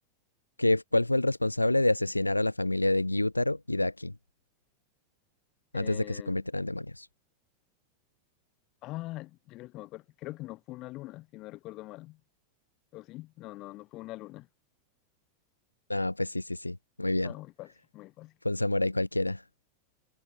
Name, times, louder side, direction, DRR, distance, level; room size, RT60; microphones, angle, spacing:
voice 1, 0.6-4.1 5.7-7.1 15.9-17.3 18.4-19.4, left 2 dB, 85° left, 0.6 m, -28 dB
voice 2, 5.7-6.4 8.8-12.2 12.9-14.5 17.2-18.3, left 18 dB, 40° left, 2.5 m, -43 dB
figure-of-eight pair, 90°, 0 cm